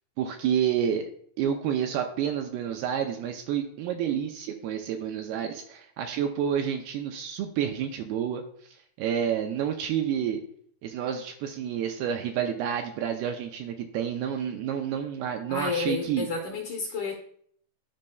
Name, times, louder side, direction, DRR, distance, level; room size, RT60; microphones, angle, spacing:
voice 1, 0.2-1.1 1.4-10.4 10.8-16.3, right 8 dB, 80° right, 4 dB, 2.3 m, -29 dB
voice 2, 15.5-17.1, left 4 dB, 65° left, 0 dB, 2.1 m, -31 dB
13.0 x 5.3 x 2.3 m, 0.62 s
omnidirectional pair, 4.8 m